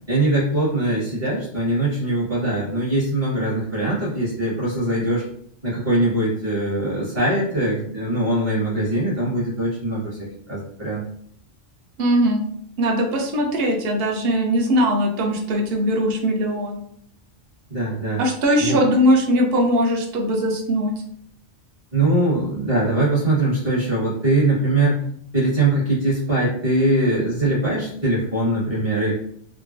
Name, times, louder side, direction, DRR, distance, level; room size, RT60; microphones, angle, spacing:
voice 1, 0.1-5.2 5.6-11.0 17.7-18.2 18.6-18.8 21.9-25.0 25.3-29.1, right 1 dB, 40° right, -9 dB, 1.5 m, -22 dB
voice 2, 12.0-12.4 12.8-16.8 18.2-20.9, equal, 60° right, 2 dB, 0.8 m, -20 dB
3.7 x 2.1 x 2.5 m, 0.66 s
omnidirectional pair, 1.3 m